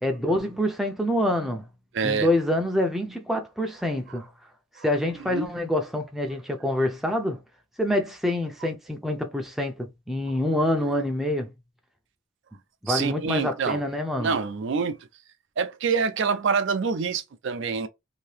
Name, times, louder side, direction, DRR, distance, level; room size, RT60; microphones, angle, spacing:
voice 1, 0.0-1.7 2.0-4.3 4.8-7.4 7.8-11.5 12.8-14.3, left 1 dB, ahead, 0.5 m, -26 dB
voice 2, 1.9-2.3 4.8-4.9 5.3-5.5 12.9-13.8 14.2-15.0 15.6-17.9, right 5 dB, 60° right, 0.4 m, -26 dB
2.8 x 2.7 x 3.2 m
head